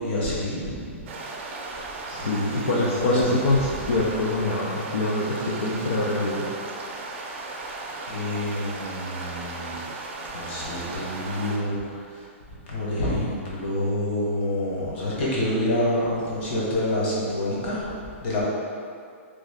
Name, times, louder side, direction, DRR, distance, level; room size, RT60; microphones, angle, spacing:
voice 1, 0.0-1.5 2.1-3.4 8.1-9.9 10.3-12.3 12.7-18.4, left 1 dB, 55° left, -6 dB, 1.1 m, -28 dB
sound 1, 1.1-11.6, right 3 dB, 60° right, 0.5 m, -36 dB
voice 2, 2.1-6.5, left 2 dB, 85° left, -5 dB, 0.5 m, -24 dB
3.1 x 2.4 x 3.5 m, 2.3 s
hypercardioid pair, 150°, 7 cm